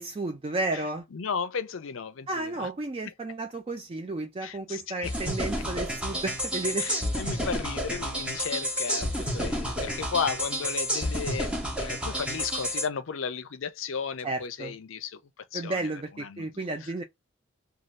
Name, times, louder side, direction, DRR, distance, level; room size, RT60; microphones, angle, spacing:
voice 1, 0.0-1.0 2.3-6.9 9.4-9.6 14.2-14.7 15.5-17.0, right 2 dB, 25° right, 0.3 m, -33 dB
voice 2, 1.1-2.7 4.4-5.1 6.8-15.2 15.5-15.9 16.2-16.9, left 6 dB, 65° left, 0.5 m, -34 dB
sound 1, 5.0-12.9, equal, 5° right, 0.8 m, -30 dB
2.6 x 2.3 x 3.1 m
head